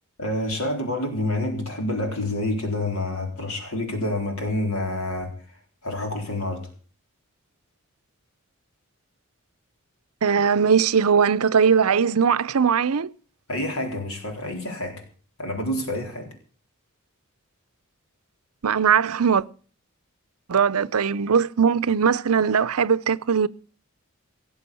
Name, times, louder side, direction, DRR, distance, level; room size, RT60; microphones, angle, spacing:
voice 1, 0.2-5.3 5.8-6.7 13.5-15.0 15.4-16.3, left 1 dB, 70° left, 4.1 m, -28 dB
voice 2, 10.2-13.1 18.6-19.4 20.5-23.5, right 6 dB, 80° right, 0.6 m, -20 dB
18.0 x 7.0 x 8.3 m
head